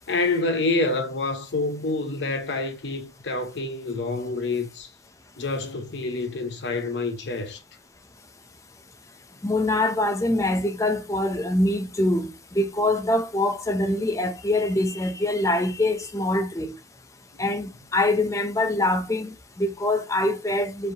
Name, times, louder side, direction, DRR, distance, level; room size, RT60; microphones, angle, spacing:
voice 1, 0.1-4.9 5.4-7.6, left 3 dB, 70° left, 0.8 m, -27 dB
voice 2, 9.4-16.7 17.4-20.9, left 1 dB, 15° left, 0.5 m, -24 dB
4.6 x 3.3 x 2.8 m
head